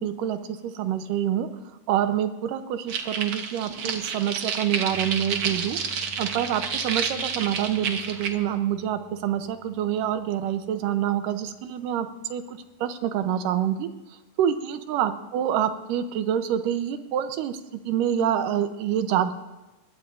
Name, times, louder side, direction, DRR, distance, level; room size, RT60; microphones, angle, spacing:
voice 1, 0.0-1.5 1.9-5.8 6.2-13.9 14.4-19.3, right 10 dB, 85° right, 9 dB, 2.4 m, -26 dB
sound 1, 2.9-8.3, right 6 dB, 60° right, 1.4 m, -30 dB
sound 2, 4.9-11.7, right 3 dB, 30° right, 0.5 m, -48 dB
22.5 x 20.5 x 2.6 m, 1.1 s
omnidirectional pair, 3.8 m